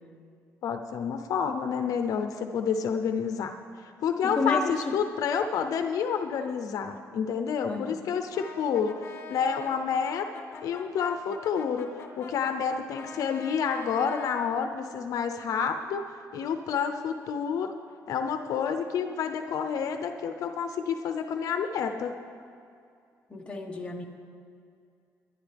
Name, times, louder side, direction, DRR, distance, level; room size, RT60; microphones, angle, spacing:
voice 1, 0.6-3.6 3.8-8.9 9.3-10.3 10.6-11.9 12.2-16.0 16.3-17.7 18.1-22.1, left 6 dB, 70° left, 6 dB, 0.7 m, -29 dB
voice 2, 4.2-4.9 7.7-8.0 23.3-24.1, left 4 dB, 15° left, 1 dB, 1.4 m, -31 dB
Brass instrument, 8.3-14.5, left 4 dB, 45° left, 1.8 m, -44 dB
21.0 x 11.0 x 3.5 m, 2.4 s
cardioid pair, 120°, 6 cm